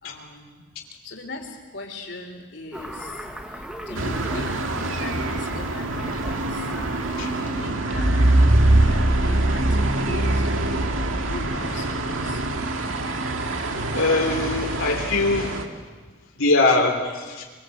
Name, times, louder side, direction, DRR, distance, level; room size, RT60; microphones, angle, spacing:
voice 1, 0.0-4.7 5.0-6.7 7.2-12.4 16.2-16.3, left 2 dB, 55° left, 3 dB, 3.7 m, -40 dB
sound 1, 2.7-7.9, equal, 5° right, 1.9 m, -38 dB
sound 2, 4.0-15.7, right 2 dB, 80° right, 2.1 m, -24 dB
sound 3, 8.5-12.6, equal, 50° right, 3.1 m, -29 dB
voice 2, 13.9-15.7 16.4-17.4, left 2 dB, 85° left, 1 dB, 3.1 m, -22 dB
24.5 x 24.0 x 8.0 m, 1.4 s
head